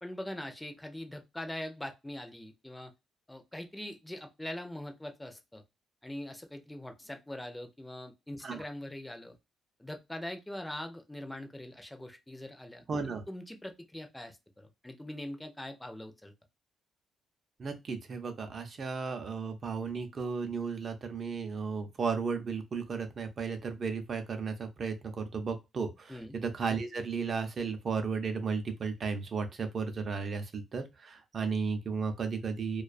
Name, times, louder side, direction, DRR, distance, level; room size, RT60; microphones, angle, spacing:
voice 1, 0.0-2.9 3.3-5.6 6.0-9.4 9.8-16.3 26.1-26.4, left 1 dB, 10° left, 6 dB, 0.5 m, -42 dB
voice 2, 12.9-13.2 17.6-32.8, right 5 dB, 45° right, 7 dB, 0.6 m, -34 dB
2.4 x 2.3 x 2.4 m, 0.23 s
cardioid pair, 90°, 0 cm